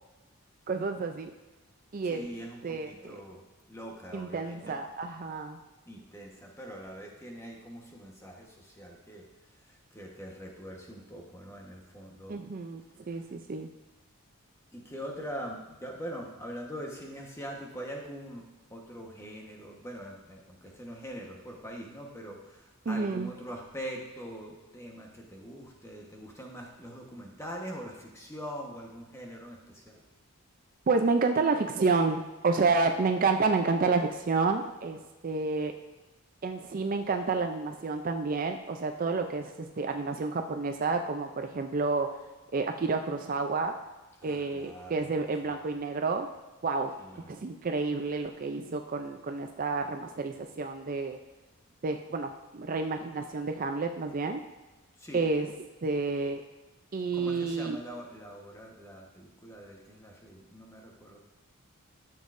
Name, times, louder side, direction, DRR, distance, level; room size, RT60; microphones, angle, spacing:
voice 1, 0.7-1.3 1.9-2.3 2.6-3.2 4.1-5.6 12.3-12.8 13.1-13.7 22.9-23.3 30.9-35.7 36.4-42.1 42.5-43.7 44.2-46.3 46.6-46.9 47.3-51.2 51.8-54.4 55.1-55.5 55.8-56.4 56.9-57.8, right 4 dB, 40° right, 5 dB, 0.4 m, -29 dB
voice 2, 2.0-3.4 3.7-4.8 5.9-9.2 9.7-12.4 14.7-18.4 18.7-30.0 44.2-45.1 45.4-45.5 47.0-47.3 55.0-55.2 57.1-61.2, equal, 10° left, 0 dB, 1.2 m, -43 dB
13.0 x 7.2 x 2.6 m, 1.1 s
head